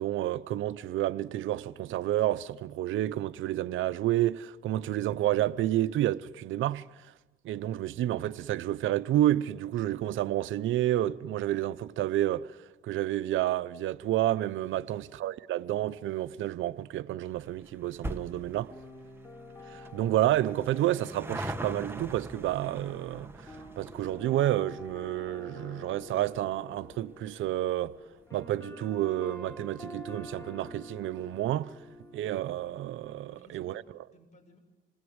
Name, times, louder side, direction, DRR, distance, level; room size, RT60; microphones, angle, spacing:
voice 1, 0.0-6.9 7.4-12.5 12.8-18.7 19.7-27.9 28.3-31.7 32.1-33.8, right 13 dB, 80° right, 0.7 m, -30 dB
sound 1, 17.3-30.0 30.3-30.4 31.3-31.4 31.6-31.7 32.0-32.1, right 1 dB, 10° right, 1.7 m, -44 dB
sound 2, 18.7-33.1, left 2 dB, 15° left, 4.1 m, -48 dB
voice 2, 33.2-34.6, right 1 dB, 35° left, 7.4 m, -59 dB
27.5 x 22.5 x 8.0 m
cardioid pair, 90°, 20 cm